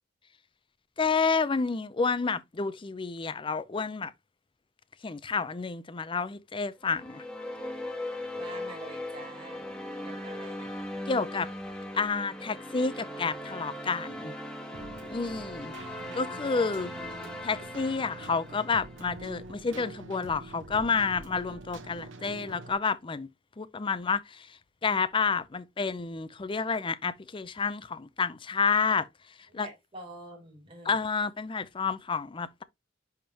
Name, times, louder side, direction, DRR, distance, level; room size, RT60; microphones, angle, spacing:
voice 1, 1.0-4.1 5.0-7.2 11.1-11.5 11.9-14.3 15.1-15.7 16.1-16.9 17.4-23.3 23.6-24.5 24.8-29.1 29.5-29.7 30.9-32.6, left 5 dB, 25° left, 0.5 m, -29 dB
sound 1, 6.8-19.2, left 1 dB, 5° left, 1.3 m, -39 dB
voice 2, 8.4-9.6 10.0-10.7 29.5-31.0, right 1 dB, 30° right, 2.7 m, -46 dB
Keyboard (musical), 14.7-22.7, right 2 dB, 85° right, 1.0 m, -45 dB
10.0 x 3.7 x 2.9 m
head